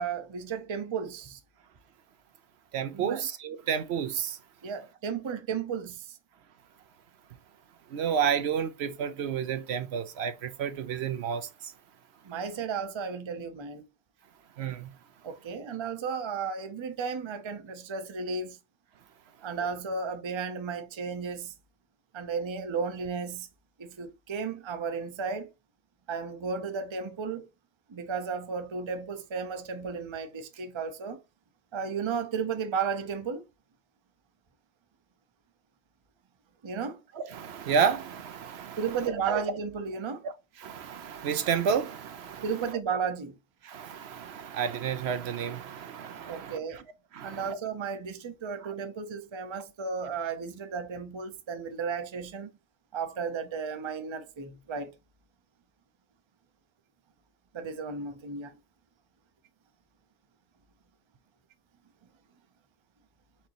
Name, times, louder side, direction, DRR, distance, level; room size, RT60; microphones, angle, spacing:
voice 1, 0.0-1.4 2.9-3.2 4.6-6.2 12.2-13.9 15.2-18.6 19.4-21.5 22.1-23.5 23.8-25.5 26.1-27.5 27.9-31.2 31.7-33.4 36.6-37.0 38.8-40.3 42.4-43.4 46.3-46.8 47.2-52.5 52.9-54.9 57.5-58.6, right 5 dB, 35° right, 0.5 m, -34 dB
voice 2, 2.7-4.4 7.9-11.7 14.6-14.9 37.2-39.4 40.2-40.3 40.6-42.8 43.6-46.8 47.1-47.6 48.6-48.7, right 7 dB, 70° right, 0.8 m, -31 dB
4.6 x 3.9 x 2.9 m
omnidirectional pair, 1.2 m